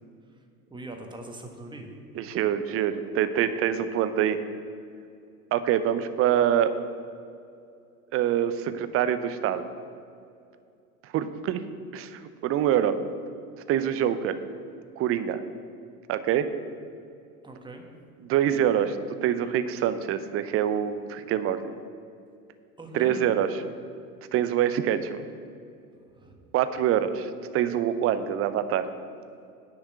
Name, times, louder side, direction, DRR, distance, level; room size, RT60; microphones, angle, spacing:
voice 1, 0.7-1.9 17.4-17.8 22.8-23.3 26.1-26.3, right 2 dB, 10° right, 3 dB, 1.5 m, -40 dB
voice 2, 2.2-4.4 5.5-6.7 8.1-9.6 11.0-11.6 11.9-13.0 13.7-14.4 15.0-15.4 16.1-16.5 18.2-21.6 22.9-23.5 24.3-25.2 26.5-28.9, right 10 dB, 30° right, 11 dB, 0.7 m, -25 dB
10.5 x 5.9 x 7.8 m, 2.5 s
figure-of-eight pair, 80°, 45 cm